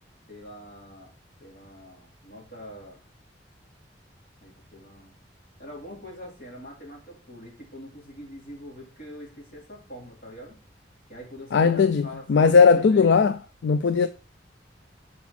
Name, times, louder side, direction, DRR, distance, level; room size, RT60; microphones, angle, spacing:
voice 1, 0.3-1.1 1.4-3.0 4.4-5.1 5.6-10.6 11.1-13.2, equal, 55° left, 3.0 m, -44 dB
voice 2, 11.5-14.1, left 5 dB, 75° left, 0.4 m, -19 dB
6.0 x 4.8 x 5.8 m
head